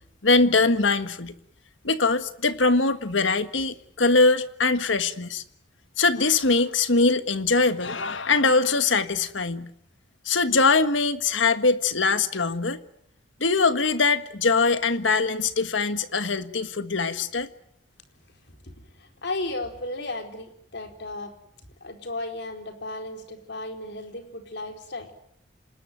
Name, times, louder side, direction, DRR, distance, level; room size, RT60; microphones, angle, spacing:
voice 1, 0.2-1.3 1.8-5.4 6.0-9.7 10.2-12.8 13.4-17.5, left 3 dB, 85° left, 11 dB, 1.6 m, -22 dB
voice 2, 19.2-21.3 21.8-25.1, left 2 dB, 65° left, 5 dB, 4.5 m, -34 dB
27.0 x 20.0 x 9.2 m, 0.72 s
head